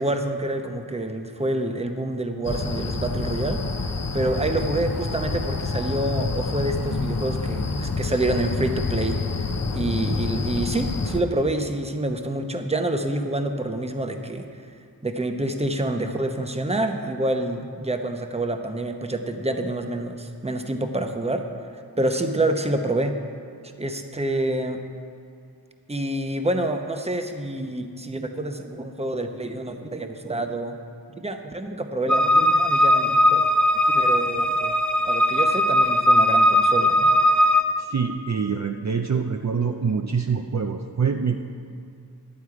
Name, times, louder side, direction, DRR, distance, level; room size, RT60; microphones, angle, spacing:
voice 1, 0.0-3.6 4.1-9.5 9.7-14.5 15.0-21.5 22.0-23.1 23.8-24.8 25.9-30.7 31.1-33.4 33.9-34.7 35.1-37.1, right 1 dB, 15° right, 5 dB, 0.8 m, -27 dB
sound 1, 2.4-11.2, left 3 dB, 40° left, 0.7 m, -27 dB
sound 2, 32.1-37.6, left 1 dB, 5° left, 1.2 m, -19 dB
voice 2, 37.8-41.4, right 6 dB, 45° right, 4 dB, 0.5 m, -25 dB
11.5 x 9.3 x 4.8 m, 2.4 s
wide cardioid pair, 75°, 39 cm